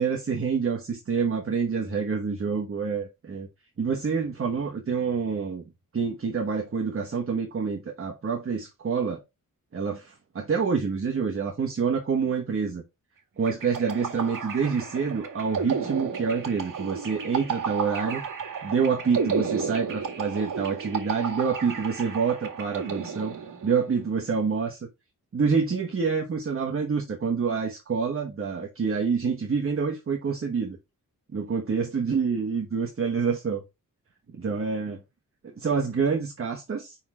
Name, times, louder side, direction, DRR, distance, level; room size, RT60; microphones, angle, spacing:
voice 1, 0.0-3.5 3.8-5.6 5.9-9.2 9.7-12.8 13.4-18.2 18.6-23.4 23.6-24.8 25.3-30.8 31.3-33.6 34.3-35.0 35.4-37.0, right 5 dB, 40° right, 1.2 m, -27 dB
sound 1, 13.5-23.9, right 6 dB, 75° right, 2.0 m, -32 dB
5.5 x 4.4 x 6.0 m
wide cardioid pair, 125°, 33 cm